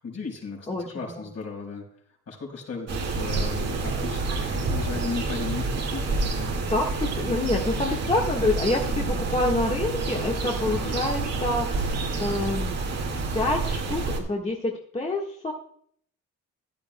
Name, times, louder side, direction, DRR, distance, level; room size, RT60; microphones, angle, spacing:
voice 1, 0.0-1.9 2.3-6.5 7.2-7.6 10.6-11.5 11.8-11.9, left 4 dB, 55° left, 0 dB, 4.5 m, -36 dB
voice 2, 0.7-1.1 6.7-11.9 12.2-12.8 13.3-15.5, left 2 dB, 20° left, -1 dB, 1.5 m, -27 dB
sound 1, 2.9-14.2, right 3 dB, 55° right, 2.0 m, -28 dB
15.0 x 10.5 x 2.2 m, 0.63 s
cardioid pair, 90°, 30 cm